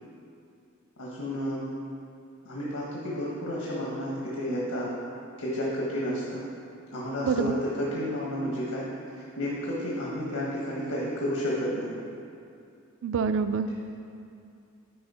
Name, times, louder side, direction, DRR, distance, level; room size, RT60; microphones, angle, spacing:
voice 1, 1.0-1.6 2.4-4.9 5.4-6.4 6.9-8.8 9.1-11.9, equal, 90° left, -5 dB, 1.3 m, -31 dB
voice 2, 13.0-13.7, right 6 dB, 60° right, 10 dB, 0.4 m, -26 dB
10.5 x 4.9 x 4.2 m, 2.5 s
head